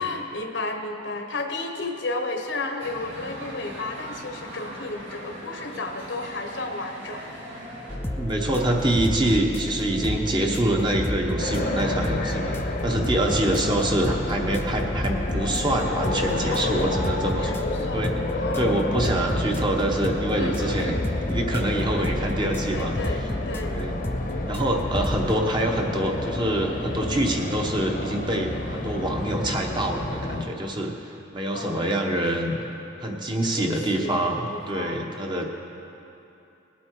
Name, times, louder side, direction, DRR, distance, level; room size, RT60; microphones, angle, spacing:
voice 1, 0.0-7.2 16.5-16.9 17.4-18.1 18.4-19.2 20.4-21.1 22.7-23.8 31.5-31.9 33.5-35.0 35.4-35.5, left 2 dB, 70° left, 4 dB, 1.1 m, -33 dB
sound 1, 2.8-8.0, right 1 dB, 80° right, 3.0 m, -40 dB
sound 2, 7.9-25.4, left 1 dB, 10° left, 0.5 m, -31 dB
voice 2, 8.1-12.6 12.8-17.6 17.9-18.1 18.6-21.0 21.3-22.9 23.7-23.9 24.5-32.6 33.0-35.5, right 1 dB, 25° right, 1 dB, 1.0 m, -25 dB
sound 3, 11.4-30.4, left 2 dB, 50° left, 1.0 m, -30 dB
19.0 x 8.5 x 4.6 m, 2.9 s
head